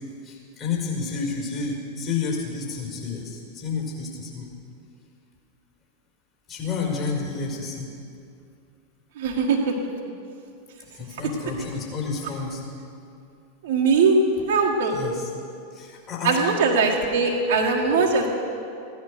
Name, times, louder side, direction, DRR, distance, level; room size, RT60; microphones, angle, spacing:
voice 1, 0.2-4.5 6.5-7.9 10.9-12.6 14.1-14.4 14.9-15.3 15.7-16.4, left 4 dB, 30° left, -3 dB, 4.9 m, -30 dB
voice 2, 9.2-9.7 13.6-14.2 14.5-15.0 16.2-18.3, right 4 dB, 55° right, -2 dB, 1.6 m, -20 dB
16.5 x 11.5 x 6.7 m, 2.5 s
figure-of-eight pair, 90°, 0 cm